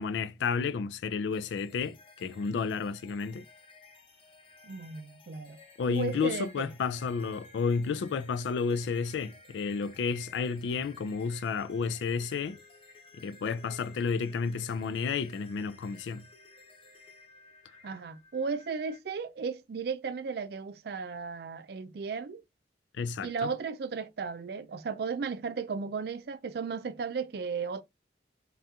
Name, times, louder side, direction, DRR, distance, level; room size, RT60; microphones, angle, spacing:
voice 1, 0.0-3.4 5.8-12.6 13.2-16.2 23.0-23.5, left 5 dB, 90° left, 0.3 m, -31 dB
sound 1, 1.3-19.0, left 3 dB, 30° left, 0.6 m, -55 dB
voice 2, 4.6-5.6 5.9-6.7 17.8-22.4 23.2-27.8, right 5 dB, 60° right, 0.4 m, -35 dB
3.4 x 2.4 x 2.7 m
head